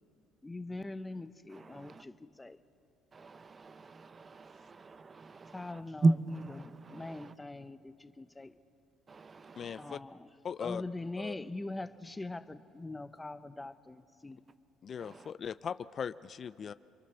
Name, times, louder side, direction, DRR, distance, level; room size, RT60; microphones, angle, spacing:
voice 1, 0.4-2.6 5.5-6.0 6.6-8.5 9.8-10.3 10.6-14.4, left 2 dB, 15° left, 0.9 m, -42 dB
voice 2, 1.5-2.0 3.1-7.3 9.1-10.0 15.0-15.3, right 3 dB, 30° right, 0.7 m, -35 dB
voice 3, 9.6-10.0 10.4-10.8 11.2-11.3 14.8-16.7, left 7 dB, 45° left, 0.5 m, -39 dB
29.0 x 23.0 x 6.9 m
cardioid pair, 90°, 0 cm